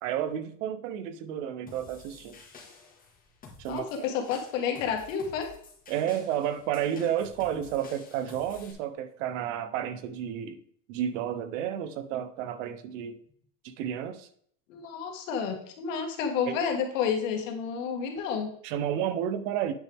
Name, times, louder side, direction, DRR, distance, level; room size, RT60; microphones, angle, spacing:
voice 1, 0.0-2.4 3.6-3.8 5.9-10.6 10.9-13.2 13.6-14.3 16.5-16.6 18.6-19.7, right 10 dB, 85° right, 12 dB, 1.0 m, -31 dB
sound 1, 1.7-8.7, left 4 dB, 20° left, 1.9 m, -51 dB
voice 2, 3.7-5.5 14.7-18.5, left 7 dB, 90° left, 3 dB, 2.0 m, -30 dB
8.9 x 6.0 x 3.6 m, 0.63 s
cardioid pair, 140°, 37 cm